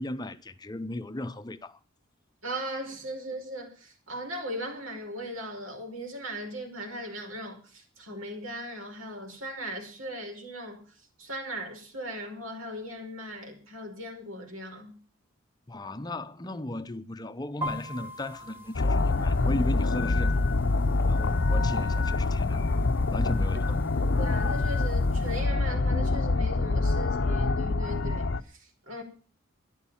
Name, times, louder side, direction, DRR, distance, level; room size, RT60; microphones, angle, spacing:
voice 1, 0.0-1.8 15.7-20.4 21.1-22.6 23.0-23.8, left 1 dB, 20° left, 0.7 m, -36 dB
voice 2, 2.4-10.8 11.2-15.0 22.5-22.9 24.0-29.0, equal, 85° right, 5.2 m, -38 dB
sound 1, 17.6-25.4, equal, 10° right, 1.4 m, -45 dB
sound 2, 18.7-28.4, left 3 dB, 60° left, 0.7 m, -25 dB
13.0 x 11.0 x 7.2 m
head